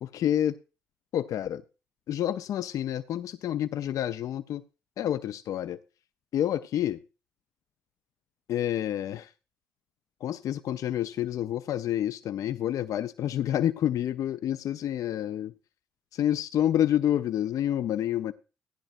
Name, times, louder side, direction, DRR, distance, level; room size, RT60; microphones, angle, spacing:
voice 1, 0.0-0.5 1.1-1.6 2.1-4.6 5.0-5.8 6.3-7.0 8.5-9.3 10.2-15.5 16.1-18.3, left 11 dB, 65° left, 12 dB, 0.5 m, -28 dB
15.0 x 10.5 x 2.5 m, 0.31 s
hypercardioid pair, 50°, 6 cm